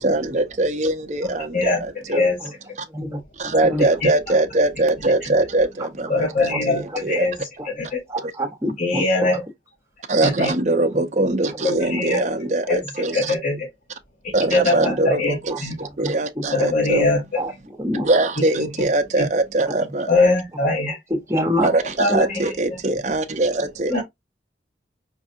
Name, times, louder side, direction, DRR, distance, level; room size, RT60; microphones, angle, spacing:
voice 1, 0.0-2.3 3.4-7.3 8.2-8.3 10.1-13.3 14.3-17.1 18.0-20.3 21.6-24.0, right 2 dB, 40° right, 0.5 m, -22 dB
voice 2, 1.2-1.8 2.1-2.4 4.0-4.1 6.1-7.3 7.6-8.0 8.8-9.4 10.2-10.5 11.6-12.2 12.7-13.7 14.5-15.4 15.6-15.7 16.5-17.2 18.6-18.7 19.2-19.3 20.1-21.0 22.0-22.4 23.9-24.0, left 3 dB, 45° left, 0.8 m, -22 dB
voice 3, 2.9-3.8 7.6-7.7 8.1-9.0 15.5-15.6 16.0-16.1 17.4-17.5 17.8-18.1 21.3-21.7 22.1-22.2, equal, 15° right, 1.0 m, -25 dB
5.3 x 2.3 x 2.6 m
head